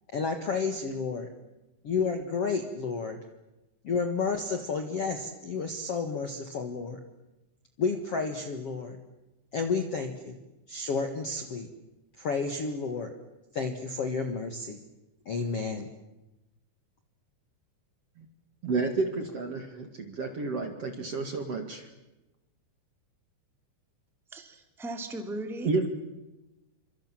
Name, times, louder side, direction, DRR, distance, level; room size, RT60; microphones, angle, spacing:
voice 1, 0.1-1.3 1.8-3.2 3.8-7.0 7.8-9.0 9.5-10.4 10.7-11.7 12.2-13.1 13.5-14.8 15.2-15.9, left 4 dB, 55° left, 6 dB, 1.8 m, -31 dB
voice 2, 18.6-21.9 25.6-25.9, right 3 dB, 45° right, 6 dB, 2.3 m, -30 dB
voice 3, 24.3-25.7, right 1 dB, ahead, 6 dB, 1.4 m, -37 dB
28.5 x 25.5 x 7.5 m, 1.0 s
omnidirectional pair, 5.2 m